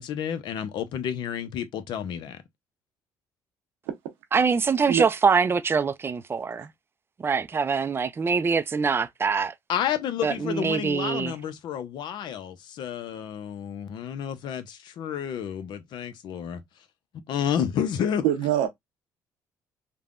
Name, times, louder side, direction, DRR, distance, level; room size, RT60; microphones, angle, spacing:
voice 1, 0.0-2.4 9.7-16.6 17.3-18.2, left 9 dB, 65° left, 0.6 m, -30 dB
voice 2, 4.3-6.7 7.2-9.5 10.2-11.3, right 5 dB, 30° right, 0.4 m, -24 dB
voice 3, 18.2-18.7, right 11 dB, 90° right, 0.7 m, -23 dB
3.3 x 2.2 x 2.4 m
supercardioid pair, 70°, 8 cm